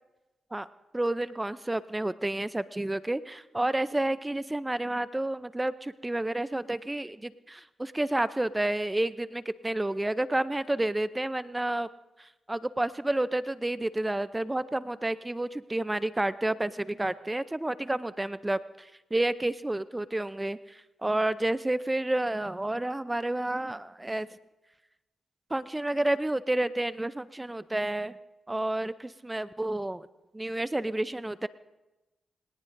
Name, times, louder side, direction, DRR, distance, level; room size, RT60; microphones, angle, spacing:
voice 1, 0.9-11.9 12.2-24.3 25.5-28.2 28.5-30.1 30.3-31.5, right 1 dB, 20° right, 15 dB, 0.6 m, -30 dB
26.0 x 18.5 x 2.6 m, 1.0 s
supercardioid pair, 50°, 0 cm